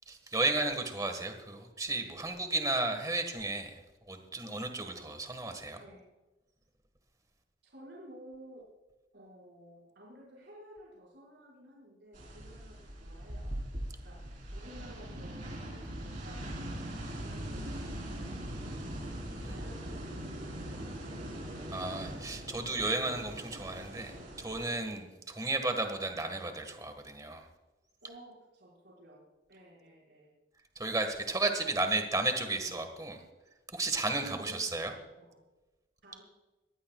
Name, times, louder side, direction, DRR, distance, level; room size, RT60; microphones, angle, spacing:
voice 1, 0.1-5.8 19.4-19.6 21.7-27.5 30.7-33.2 33.7-34.9, right 2 dB, 20° right, 6 dB, 1.6 m, -33 dB
voice 2, 7.6-8.7 9.1-13.6 14.0-19.0 19.4-21.4 28.0-29.2 29.5-30.3 31.6-31.7 34.2-34.6 34.9-35.3 36.0-36.2, equal, 60° right, -4 dB, 5.6 m, -54 dB
sound 1, 12.1-24.7, right 1 dB, 45° right, 3.9 m, -41 dB
22.5 x 15.5 x 2.4 m, 1.1 s
head